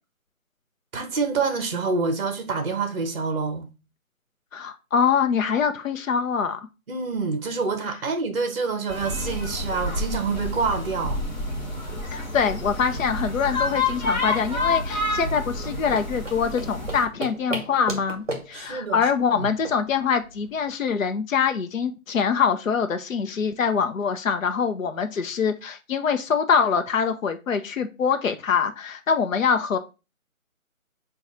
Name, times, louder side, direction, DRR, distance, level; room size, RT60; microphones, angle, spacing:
voice 1, 0.9-3.7 6.9-11.2 18.5-19.0 19.3-19.5, right 4 dB, 45° right, 0.6 m, -27 dB
voice 2, 4.5-6.6 12.1-29.8, left 6 dB, 65° left, 0.6 m, -24 dB
sound 1, 8.9-17.1, left 2 dB, 30° left, 0.8 m, -29 dB
sound 2, 15.6-20.7, right 2 dB, 25° right, 1.0 m, -36 dB
4.7 x 2.3 x 4.0 m
figure-of-eight pair, 155°, 42 cm